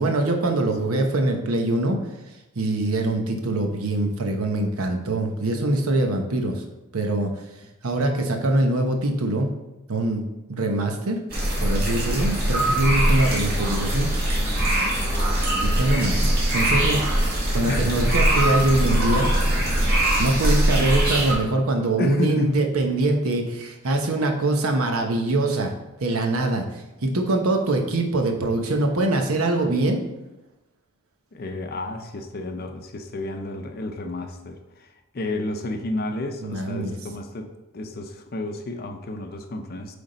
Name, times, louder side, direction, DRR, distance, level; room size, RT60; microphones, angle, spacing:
voice 1, 0.0-2.0 2.6-6.6 6.9-7.3 7.8-9.5 9.9-11.2 11.6-14.1 15.6-17.0 17.5-19.3 20.2-25.7 26.0-26.6 27.0-30.0 36.4-37.0, right 2 dB, 85° right, 3 dB, 0.9 m, -23 dB
sound 1, 11.3-21.3, right 1 dB, 45° right, 2.1 m, -22 dB
voice 2, 14.4-14.8 17.7-18.1 22.0-22.6 31.3-34.9 35.1-37.5 37.7-40.0, left 2 dB, 45° left, 5 dB, 0.6 m, -31 dB
8.2 x 3.5 x 4.0 m, 0.99 s
head